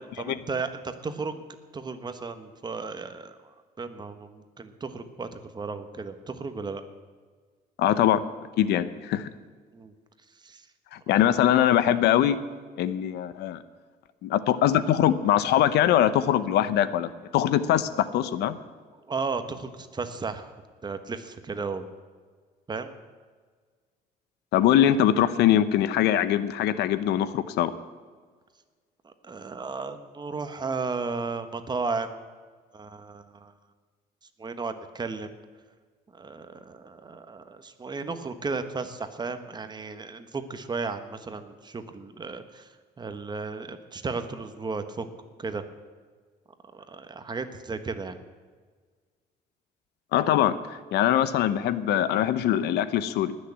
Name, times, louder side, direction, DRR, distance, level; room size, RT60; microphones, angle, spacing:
voice 1, 0.2-1.4 1.7-3.3 3.8-6.8 9.7-9.9 10.4-10.7 19.1-20.5 20.8-21.8 22.7-22.9 29.0-32.2 32.7-33.5 34.4-35.3 36.1-42.7 43.0-45.1 45.4-45.6 46.7-48.2, right 4 dB, 25° right, 9 dB, 1.2 m, -34 dB
voice 2, 7.8-8.2 8.6-9.3 11.1-12.4 12.8-13.6 14.2-18.6 24.5-27.7 50.1-53.4, left 11 dB, 80° left, 14 dB, 0.8 m, -22 dB
19.5 x 6.6 x 8.4 m, 1.5 s
cardioid pair, 110°, 17 cm